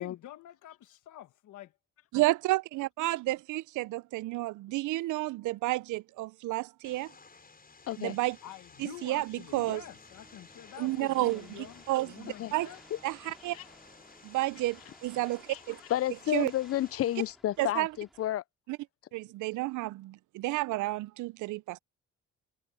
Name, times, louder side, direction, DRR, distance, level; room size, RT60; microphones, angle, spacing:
voice 1, 0.0-1.7 8.4-12.8, left 12 dB, 80° left, 1.8 m, -48 dB
voice 2, 2.1-7.1 8.0-8.4 8.8-9.8 10.8-12.7 13.0-13.6 14.2-15.8 16.3-16.5 17.6-17.9 18.7-18.8 19.1-21.8, right 18 dB, 80° right, 0.5 m, -31 dB
Vehicle, 6.8-17.3, left 4 dB, 30° left, 6.2 m, -55 dB
voice 3, 7.9-8.2 12.4-12.5 12.9-13.0 13.5-13.6 15.5-15.6 15.9-18.4, left 13 dB, 50° left, 0.5 m, -31 dB
sound 1, 9.5-15.6, right 2 dB, 15° right, 5.3 m, -65 dB
sound 2, 10.1-18.3, equal, ahead, 3.6 m, -60 dB
cardioid pair, 90°, 30 cm